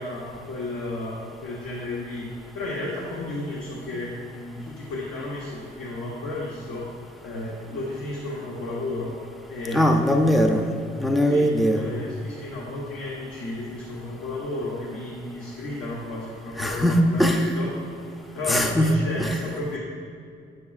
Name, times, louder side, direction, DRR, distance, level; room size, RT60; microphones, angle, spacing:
voice 1, 0.0-2.3 2.5-6.9 7.2-9.1 9.5-9.8 11.3-17.7 18.3-19.8, left 2 dB, 75° left, -5 dB, 1.1 m, -33 dB
voice 2, 9.7-11.8 16.6-17.5 18.5-18.9 19.2-19.3, equal, ahead, 3 dB, 0.5 m, -21 dB
8.4 x 6.6 x 2.4 m, 2.3 s
cardioid pair, 90°, 20 cm